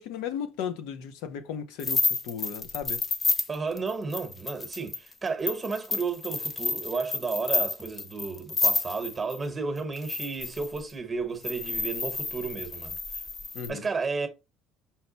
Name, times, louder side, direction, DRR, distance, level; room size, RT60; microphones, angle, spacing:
voice 1, 0.0-3.0 13.5-13.8, left 8 dB, 85° left, 0.7 m, -35 dB
sound 1, 1.8-9.4 9.9-10.8 11.4-13.7, left 3 dB, 25° left, 0.5 m, -30 dB
voice 2, 3.5-13.0 13.7-14.3, right 4 dB, 20° right, 1.0 m, -32 dB
5.6 x 2.2 x 3.9 m
cardioid pair, 130°, 0 cm